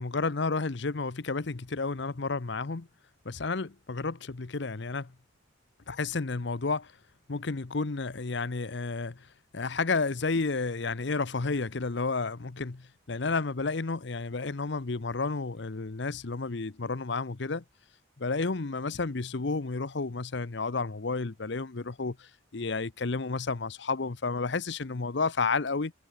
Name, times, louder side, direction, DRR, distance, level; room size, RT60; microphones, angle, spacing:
voice 1, 0.0-2.9 3.2-5.1 5.9-6.9 7.3-9.3 9.5-17.6 18.2-25.9, left 4 dB, 60° left, 0.8 m, -31 dB
head